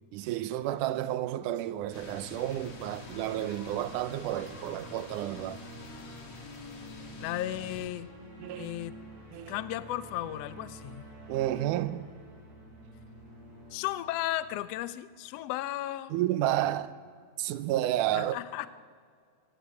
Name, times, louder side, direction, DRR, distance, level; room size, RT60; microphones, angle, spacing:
voice 1, 0.1-5.6 8.4-8.7 9.3-9.6 11.3-12.1 16.1-16.9 17.4-18.4, right 13 dB, 80° right, 2.3 m, -31 dB
sound 1, 1.4-15.6, right 1 dB, 55° right, 8.1 m, -49 dB
sound 2, 1.9-7.9, left 2 dB, 45° left, 3.4 m, -47 dB
voice 2, 7.2-8.1 8.6-8.9 9.5-11.1 13.7-16.1 18.1-18.7, left 14 dB, 70° left, 1.5 m, -35 dB
25.0 x 18.5 x 8.3 m
omnidirectional pair, 3.7 m